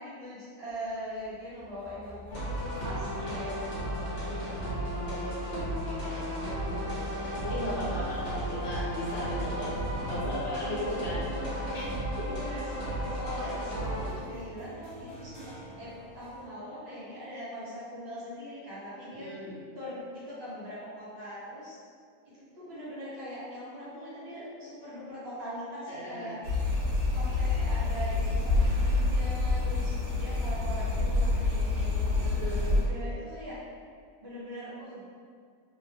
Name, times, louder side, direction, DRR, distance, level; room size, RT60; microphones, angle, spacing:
voice 1, 0.0-3.6 7.9-8.3 10.1-11.6 12.2-12.7 13.1-19.3 19.7-21.8 22.3-26.4 27.1-33.6 34.2-35.0, equal, 30° right, -10 dB, 0.8 m, -41 dB
sound 1, 0.7-16.5, left 1 dB, 55° right, 0.4 m, -50 dB
sound 2, 2.3-14.1, equal, 40° left, 0.7 m, -34 dB
voice 2, 4.1-11.2 11.7-12.3 19.1-19.5 25.9-26.3 32.1-32.8, left 1 dB, 80° left, -8 dB, 0.5 m, -38 dB
sound 3, 26.4-32.8, left 2 dB, 80° right, 1.3 m, -27 dB
3.2 x 2.1 x 2.7 m, 2.1 s
omnidirectional pair, 1.8 m